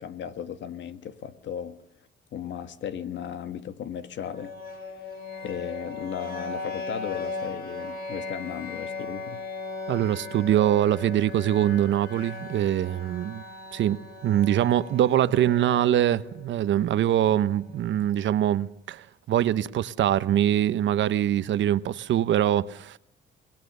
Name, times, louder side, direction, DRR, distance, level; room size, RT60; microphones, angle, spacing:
voice 1, 0.0-1.8 2.3-4.5 5.4-9.4, left 8 dB, 70° left, 1.6 m, -36 dB
sound 1, 4.2-18.1, left 3 dB, 50° left, 5.5 m, -38 dB
voice 2, 9.9-13.4 13.7-23.0, right 11 dB, 70° right, 0.9 m, -23 dB
26.0 x 18.5 x 6.8 m
cardioid pair, 90°, 20 cm